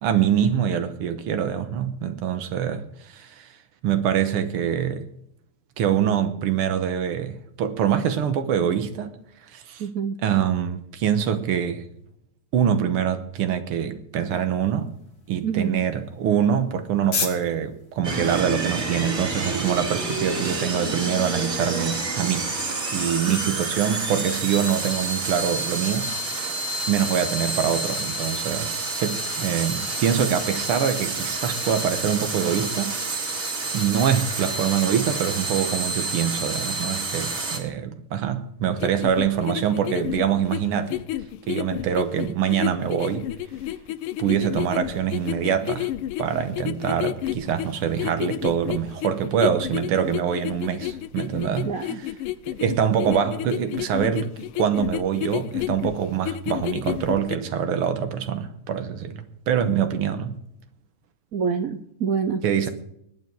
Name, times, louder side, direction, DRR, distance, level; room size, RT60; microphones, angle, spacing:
voice 1, 0.0-3.5 3.8-5.1 5.8-9.1 9.5-9.8 10.2-11.8 12.5-14.9 15.3-22.5 22.9-26.1 26.9-28.7 29.0-33.5 33.7-41.0 41.5-43.3 44.2-45.9 46.2-52.1 52.6-60.4 62.4-62.7, right 8 dB, 90° right, 1.9 m, -24 dB
voice 2, 9.8-10.1 15.4-15.8 23.3-23.7 51.7-52.0 61.3-62.4, right 6 dB, 65° right, 0.8 m, -26 dB
sound 1, 14.3-21.3, left 5 dB, 65° left, 2.8 m, -38 dB
sound 2, 18.0-37.6, right 3 dB, 40° right, 2.5 m, -29 dB
sound 3, 38.8-57.4, left 13 dB, 85° left, 1.5 m, -31 dB
19.5 x 9.4 x 4.6 m
omnidirectional pair, 2.4 m